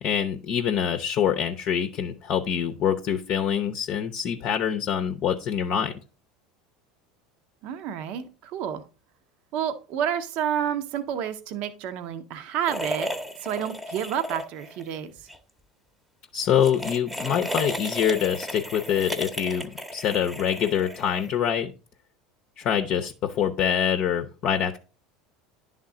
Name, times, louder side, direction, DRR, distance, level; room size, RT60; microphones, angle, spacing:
voice 1, 0.0-5.9 16.3-21.7 22.6-24.8, left 9 dB, 50° left, 7 dB, 0.7 m, -25 dB
voice 2, 7.6-8.8 9.5-13.1 13.4-15.1, right 9 dB, 55° right, 9 dB, 0.7 m, -29 dB
sound 1, 12.7-14.9 15.2-15.4 16.5-21.5, equal, 5° right, 0.9 m, -34 dB
10.5 x 3.7 x 3.7 m, 0.34 s
hypercardioid pair, 80°, 2 cm